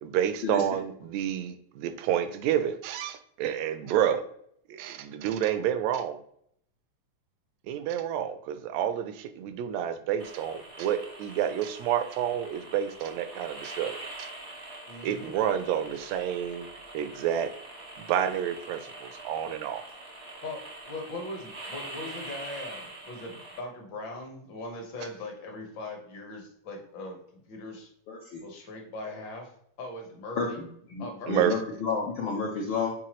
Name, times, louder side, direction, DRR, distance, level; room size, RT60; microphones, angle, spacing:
voice 1, 0.0-4.3 4.7-6.2 7.7-14.3 15.0-16.7 16.9-17.5 18.0-19.8 31.3-31.5, right 10 dB, 80° right, 10 dB, 1.7 m, -29 dB
sound 1, 10.2-23.6, right 2 dB, 50° right, 0.8 m, -44 dB
voice 2, 14.9-15.3 20.4-27.9 28.4-29.5 29.8-30.6 31.0-31.3, left 2 dB, 55° left, 2 dB, 1.3 m, -40 dB
voice 3, 28.1-28.4 30.4-32.9, left 4 dB, 75° left, -1 dB, 1.2 m, -31 dB
7.4 x 4.5 x 3.0 m, 0.69 s
omnidirectional pair, 3.4 m